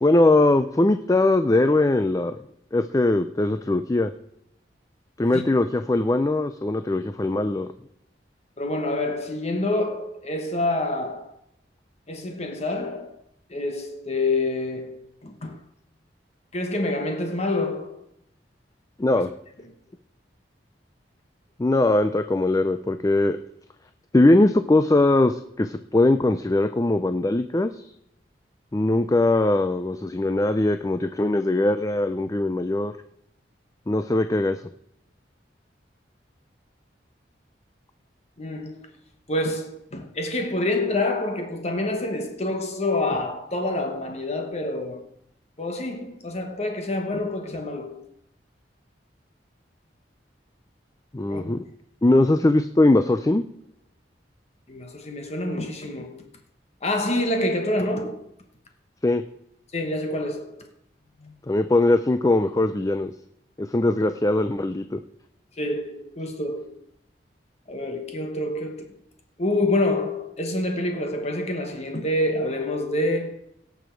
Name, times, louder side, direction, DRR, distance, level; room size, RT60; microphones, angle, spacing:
voice 1, 0.0-2.4 2.7-4.1 5.2-7.7 19.0-19.3 21.6-23.4 24.1-27.9 28.7-32.9 33.9-34.6 51.1-51.6 52.0-53.5 59.0-59.2 61.5-63.1 63.6-65.0, left 2 dB, 20° left, 0.4 m, -21 dB
voice 2, 8.6-11.3 12.1-13.2 13.5-15.6 16.5-18.0 19.1-19.2 38.4-38.9 39.3-45.0 45.6-48.0 51.3-51.6 54.7-56.3 56.8-58.3 59.7-60.7 61.2-61.3 65.6-66.8 67.7-68.9 69.4-73.4, left 2 dB, 35° left, 1.2 m, -27 dB
17.5 x 7.0 x 4.6 m
head